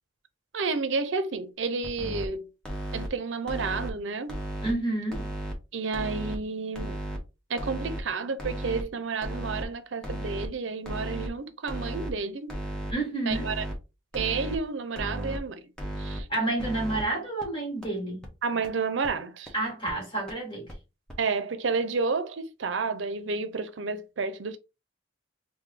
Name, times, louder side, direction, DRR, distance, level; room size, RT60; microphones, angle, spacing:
voice 1, 0.5-2.5 2.9-4.4 5.7-7.0 7.5-12.6 13.3-13.6 14.1-15.6 16.0-16.3 18.4-19.5 21.2-24.6, right 4 dB, 80° right, 0.6 m, -31 dB
sound 1, 1.8-2.3 2.6-3.1 3.5-3.9 4.3-4.7 5.1-5.5 5.9-6.4 6.7-7.2 7.6-8.0 8.4-8.8 9.2-9.6 10.0-10.5 10.9-11.3 11.7-12.1 12.5-12.9 13.3-13.7 14.1-14.6 15.0-15.4 15.8-16.2 16.6-17.0 17.4-17.5 17.8-17.9 18.2-18.3 18.6-18.7 19.0-19.1 19.5-19.6 19.9-20.0 20.3-20.4 20.7-20.8 21.1-21.2, right 1 dB, 5° left, 1.1 m, -34 dB
voice 2, 4.6-5.4 12.9-13.5 16.3-18.3 19.5-20.7, right 2 dB, 25° left, 2.0 m, -30 dB
3.3 x 2.6 x 3.6 m
head